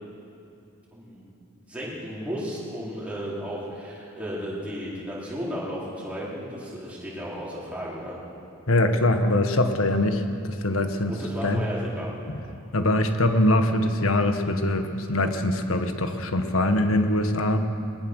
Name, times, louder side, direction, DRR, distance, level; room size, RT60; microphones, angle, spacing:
voice 1, 0.9-1.3 1.5-8.1 11.1-12.1, equal, 5° right, -7 dB, 4.6 m, -34 dB
voice 2, 8.7-11.2 11.4-11.7 12.3-12.4 12.7-17.6, left 1 dB, 70° left, 7 dB, 1.5 m, -23 dB
21.0 x 20.5 x 6.5 m, 2.7 s
head